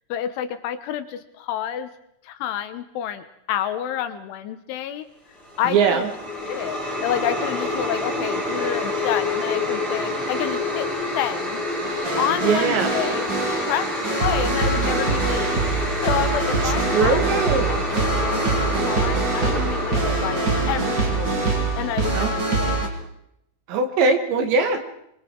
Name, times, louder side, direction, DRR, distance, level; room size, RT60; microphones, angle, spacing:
voice 1, 0.1-1.9 2.2-5.1 5.6-6.1 6.4-11.6 12.2-13.3 13.6-13.9 14.2-17.4 17.7-21.5 21.8-22.8, left 10 dB, 75° left, 10 dB, 3.3 m, -29 dB
sound 1, 5.4-21.8, left 1 dB, 10° left, 7.8 m, -28 dB
voice 2, 5.7-6.1 12.4-12.9 16.6-17.8 22.1-22.3 23.7-24.8, right 5 dB, 65° right, 7 dB, 3.6 m, -21 dB
sound 2, 11.8-22.9, right 3 dB, 25° right, 2.9 m, -24 dB
25.0 x 23.5 x 4.6 m, 0.78 s
omnidirectional pair, 5.9 m